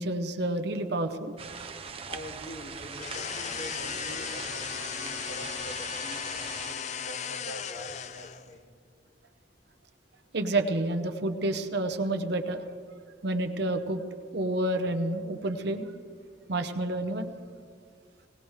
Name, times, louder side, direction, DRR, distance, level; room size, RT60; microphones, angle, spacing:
voice 1, 0.0-1.3 10.3-12.6 13.2-14.0 14.3-15.9 16.5-17.3, right 1 dB, 65° right, 6 dB, 0.9 m, -29 dB
sound 1, 1.4-6.7, right 5 dB, 35° right, 0.6 m, -41 dB
voice 2, 2.0-8.6, equal, 60° left, -2 dB, 2.4 m, -44 dB
sound 2, 2.9-8.5, left 8 dB, 40° left, 0.4 m, -36 dB
18.5 x 18.5 x 3.2 m, 2.1 s
head